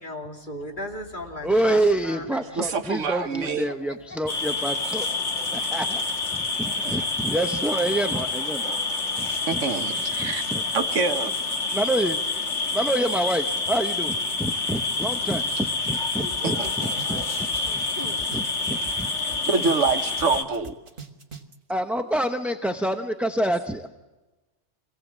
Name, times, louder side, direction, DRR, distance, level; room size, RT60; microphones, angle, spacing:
voice 1, 0.0-2.7 3.2-4.0 16.1-17.5 17.9-18.2, left 1 dB, 40° left, 1 dB, 2.7 m, -38 dB
voice 2, 1.4-5.1 5.5-6.0 6.3-8.8 9.2-9.6 10.2-10.6 11.7-12.2 12.7-17.8 18.3-19.1 19.5-19.7 21.7-23.9, right 1 dB, ahead, 5 dB, 0.6 m, -27 dB
voice 3, 2.6-3.7 6.8-7.0 9.5-10.4 10.7-11.3 16.4-16.7 19.2-20.7, right 4 dB, 80° right, 8 dB, 1.5 m, -26 dB
sound 1, 4.3-20.4, left 3 dB, 75° left, 1.9 m, -28 dB
sound 2, 16.3-16.4 16.6-19.0 19.3-21.6, right 4 dB, 45° right, 1.6 m, -41 dB
26.0 x 17.0 x 7.4 m, 1.1 s
omnidirectional pair, 1.2 m